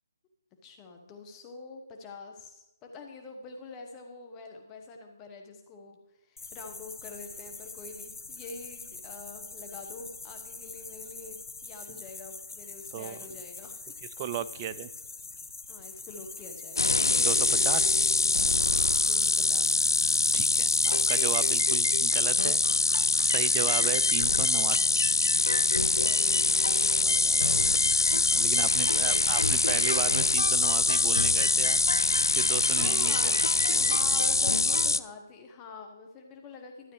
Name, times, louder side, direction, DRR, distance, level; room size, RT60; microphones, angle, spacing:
voice 1, 0.6-13.8 15.7-16.8 19.0-19.9 26.0-27.8 28.5-29.3 32.6-33.4 33.7-36.9, left 3 dB, 15° left, 2 dB, 1.1 m, -45 dB
sound 1, 6.4-21.6, left 4 dB, 60° left, 1.0 m, -44 dB
voice 2, 12.9-13.3 14.2-14.9 17.2-18.0 20.3-24.8 28.3-33.4 33.7-33.8, right 11 dB, 20° right, 14 dB, 0.3 m, -35 dB
sound 2, 16.8-35.0, left 3 dB, 80° left, 0.4 m, -24 dB
12.5 x 8.3 x 3.2 m, 0.95 s
figure-of-eight pair, 155°, 2 cm